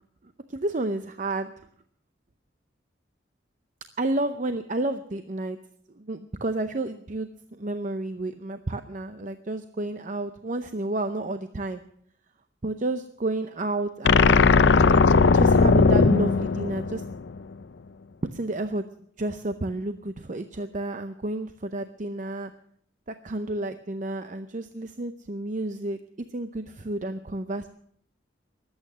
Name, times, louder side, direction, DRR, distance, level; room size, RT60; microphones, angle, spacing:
voice 1, 0.5-1.5 4.0-5.6 6.0-11.8 12.6-14.4 15.3-17.0 18.3-18.8 19.2-22.5 23.1-26.0 26.3-27.7, right 2 dB, 45° right, 9 dB, 0.6 m, -31 dB
sound 1, 14.0-17.4, left 4 dB, 70° left, 0.6 m, -18 dB
22.0 x 8.9 x 6.1 m, 0.64 s
head